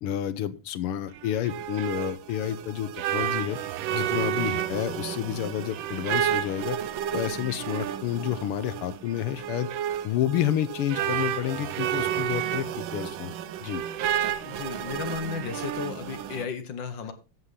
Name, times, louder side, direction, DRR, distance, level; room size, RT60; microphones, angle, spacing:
voice 1, 0.0-3.6 3.9-6.8 7.1-9.7 10.0-13.3 13.6-13.8, left 11 dB, 85° left, 15 dB, 1.8 m, -30 dB
sound 1, 1.1-16.4, right 10 dB, 70° right, 1.4 m, -31 dB
voice 2, 14.4-17.1, left 6 dB, 60° left, 10 dB, 1.6 m, -34 dB
13.5 x 8.3 x 3.7 m, 0.31 s
omnidirectional pair, 2.4 m